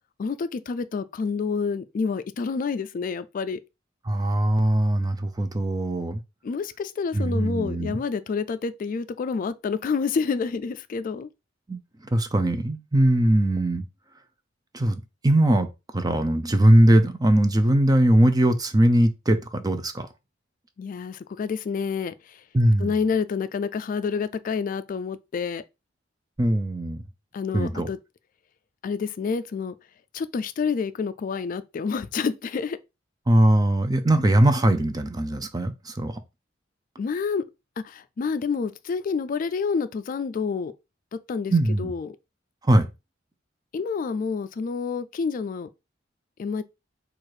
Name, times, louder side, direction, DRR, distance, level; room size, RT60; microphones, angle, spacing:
voice 1, 0.2-3.6 6.4-11.3 20.8-22.4 22.8-25.6 27.3-28.0 28.8-29.7 30.1-32.8 37.0-37.4 37.8-40.7 41.1-41.5 41.8-42.2 43.7-45.7 46.4-46.6, left 5 dB, 45° left, 0.3 m, -28 dB
voice 2, 4.1-6.2 7.1-8.0 11.7-11.8 12.1-13.9 14.7-15.7 15.9-20.1 22.5-22.9 26.4-27.0 27.5-27.9 33.3-36.2 41.5-41.9 42.7-42.9, right 1 dB, 20° right, 0.5 m, -20 dB
4.5 x 2.5 x 4.7 m
head